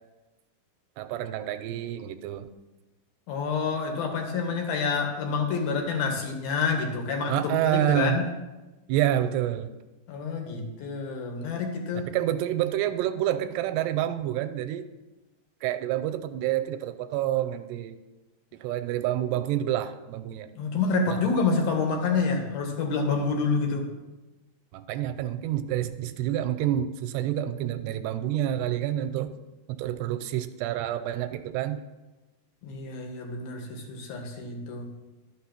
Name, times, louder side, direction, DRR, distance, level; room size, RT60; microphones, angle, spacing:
voice 1, 1.0-2.5 7.3-8.2 8.9-9.7 12.0-14.9 15.6-18.0 18.6-20.5 21.1-21.2 24.7-29.3 29.7-31.8, right 12 dB, 85° right, 10 dB, 2.7 m, -28 dB
voice 2, 3.3-8.3 10.1-12.1 20.6-23.9 32.6-34.9, left 4 dB, 65° left, 3 dB, 3.0 m, -28 dB
12.5 x 6.2 x 5.9 m, 1.1 s
omnidirectional pair, 4.9 m